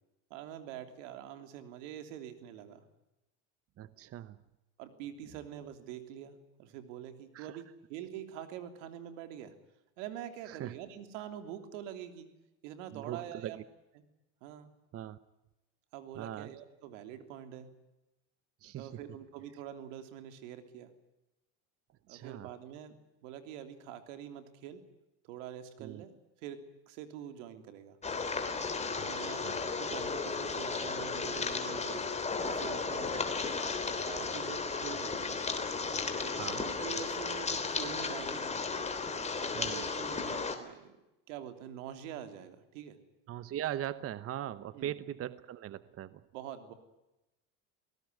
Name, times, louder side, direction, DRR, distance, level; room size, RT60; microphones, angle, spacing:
voice 1, 0.3-2.8 4.8-7.6 7.9-9.5 10.0-12.3 12.6-13.6 14.0-14.1 14.4-14.7 15.9-17.7 18.8-20.9 22.1-22.9 23.2-24.8 25.2-26.1 26.4-26.6 26.9-28.0 29.0-29.4 29.7-32.0 32.4-33.4 34.0-35.4 36.2-38.6 39.3-41.0 41.3-43.0 44.7-44.9 46.3-46.7, right 10 dB, 85° right, 8 dB, 3.2 m, -45 dB
voice 2, 3.8-4.4 7.3-7.6 10.5-10.7 12.9-13.6 14.9-15.2 16.1-16.5 18.6-19.0 22.1-22.5 25.8-26.0 29.0-29.6 36.3-36.6 39.5-39.8 43.3-46.2, right 12 dB, 40° right, 15 dB, 1.0 m, -40 dB
sound 1, 28.0-40.6, left 4 dB, 20° left, 3.3 m, -34 dB
22.5 x 18.5 x 9.4 m, 0.97 s
supercardioid pair, 120°, 36 cm